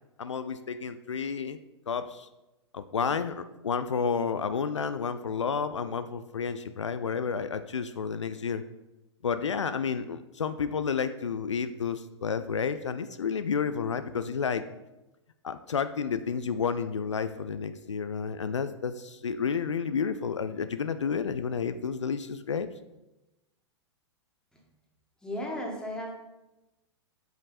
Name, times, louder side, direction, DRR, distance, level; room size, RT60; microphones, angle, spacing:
voice 1, 0.2-1.6 1.9-2.3 2.7-8.6 9.2-14.6 15.4-22.7, left 6 dB, 80° left, 11 dB, 0.4 m, -31 dB
voice 2, 25.2-26.1, left 1 dB, 5° left, -2 dB, 1.9 m, -34 dB
7.8 x 5.1 x 4.2 m, 0.99 s
figure-of-eight pair, 100°, 15 cm